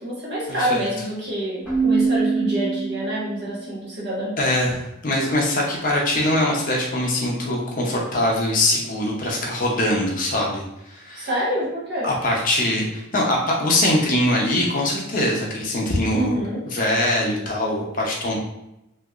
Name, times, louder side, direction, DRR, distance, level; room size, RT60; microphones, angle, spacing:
voice 1, 0.0-4.4 11.1-12.1 16.1-16.7, equal, 50° right, -7 dB, 1.3 m, -26 dB
Keyboard (musical), 1.7-3.5, right 5 dB, 5° right, 0.7 m, -23 dB
voice 2, 4.4-11.3 12.0-16.4 16.7-18.4, left 1 dB, 40° left, -2 dB, 0.7 m, -22 dB
2.9 x 2.8 x 2.4 m, 0.86 s
head